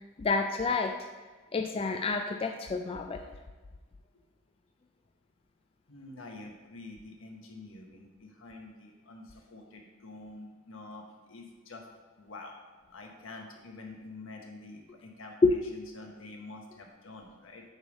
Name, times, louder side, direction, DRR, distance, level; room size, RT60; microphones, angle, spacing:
voice 1, 0.2-1.0 1.5-3.2 15.4-15.5, left 3 dB, 30° left, 5 dB, 0.3 m, -28 dB
voice 2, 5.9-11.9 12.2-12.6 12.9-17.6, left 2 dB, 80° left, 1 dB, 1.2 m, -47 dB
8.1 x 3.4 x 5.2 m, 1.3 s
head